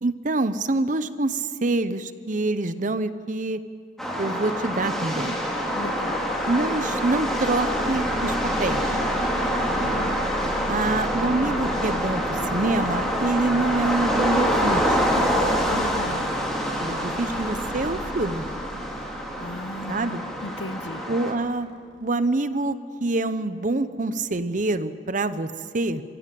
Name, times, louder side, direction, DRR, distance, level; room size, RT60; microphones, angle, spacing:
voice 1, 0.0-3.6 4.2-5.3 6.5-8.8 10.7-15.0 16.8-18.5 19.9-20.2 21.1-21.7 22.0-26.0, right 2 dB, 45° right, 13 dB, 0.8 m, -26 dB
sound 1, 4.0-21.3, equal, ahead, 2.9 m, -26 dB
sound 2, 4.9-22.1, right 1 dB, 85° right, 1.2 m, -38 dB
voice 2, 5.7-6.2 9.8-10.2 15.7-16.2 19.4-21.0, left 1 dB, 90° left, 12 dB, 0.9 m, -36 dB
24.0 x 16.0 x 7.6 m, 2.3 s
head